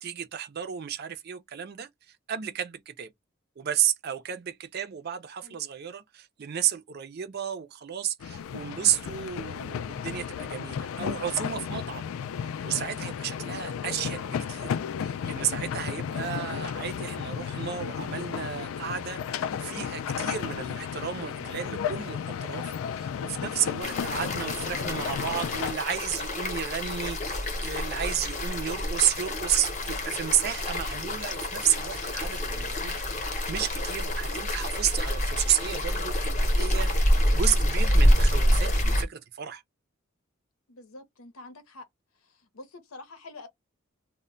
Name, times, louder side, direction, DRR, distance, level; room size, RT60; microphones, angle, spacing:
voice 1, 0.0-1.9 2.3-3.1 3.6-12.1 12.6-14.7 15.0-22.6 22.9-39.6, right 10 dB, 50° right, 0.4 m, -32 dB
sound 1, 8.2-25.7, left 7 dB, 75° left, 0.3 m, -33 dB
sound 2, 23.8-39.0, equal, 35° left, 0.7 m, -27 dB
voice 2, 40.7-41.9 42.1-43.5, left 2 dB, 90° left, 0.8 m, -47 dB
2.1 x 2.1 x 3.7 m
head